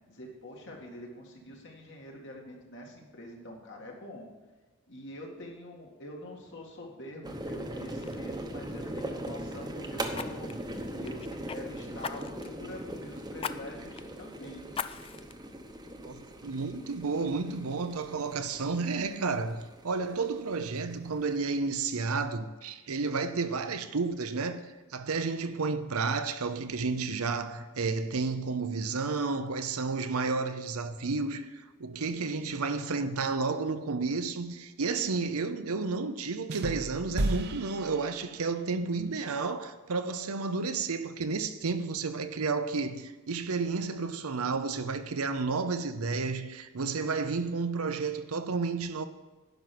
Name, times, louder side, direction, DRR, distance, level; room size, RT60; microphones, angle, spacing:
voice 1, 0.1-4.2 4.9-10.5 11.0-11.2 11.5-14.7, left 1 dB, 60° left, 2.2 m, -45 dB
sound 1, 7.2-21.7, right 1 dB, 20° right, 0.9 m, -40 dB
Fire, 7.4-7.7 8.0-8.2 10.1-11.6 12.0-12.6 13.4-13.6 14.0-14.1 14.7-15.3 15.9-16.0, left 6 dB, 25° left, 0.3 m, -38 dB
voice 2, 16.0-24.6 24.9-49.1, right 4 dB, 85° right, 0.8 m, -31 dB
sound 2, 36.5-38.7, right 1 dB, 50° right, 0.8 m, -34 dB
10.5 x 5.9 x 7.8 m
head